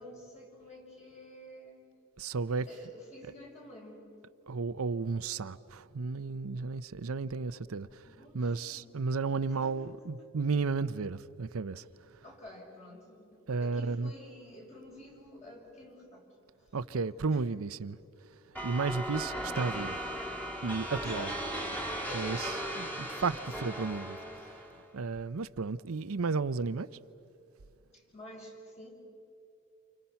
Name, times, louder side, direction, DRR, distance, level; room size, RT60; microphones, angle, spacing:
voice 1, 0.0-1.8 2.5-4.0 8.0-9.0 9.5-9.7 10.2-10.3 12.2-16.2 17.3-17.4 21.0-23.4 27.9-28.9, left 1 dB, 35° left, 6.2 m, -49 dB
voice 2, 2.2-2.7 4.5-8.1 8.3-11.8 13.5-14.1 16.7-18.0 18.6-20.0 20.6-21.3 22.1-22.5 22.8-24.2 24.4-24.5 24.9-26.9, right 4 dB, 90° right, 0.7 m, -33 dB
sound 1, 18.5-24.8, right 1 dB, 10° left, 2.4 m, -37 dB
29.5 x 29.0 x 5.8 m
head